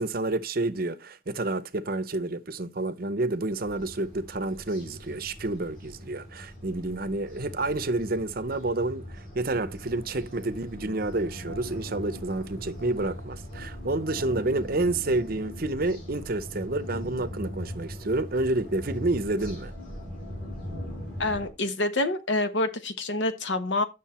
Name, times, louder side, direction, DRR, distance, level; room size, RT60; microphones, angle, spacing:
voice 1, 0.0-19.7, right 2 dB, 45° right, 0.7 m, -29 dB
sound 1, 3.6-21.5, equal, 45° left, 5.7 m, -40 dB
voice 2, 21.2-23.8, left 2 dB, 65° left, 1.2 m, -27 dB
9.1 x 6.4 x 4.3 m
head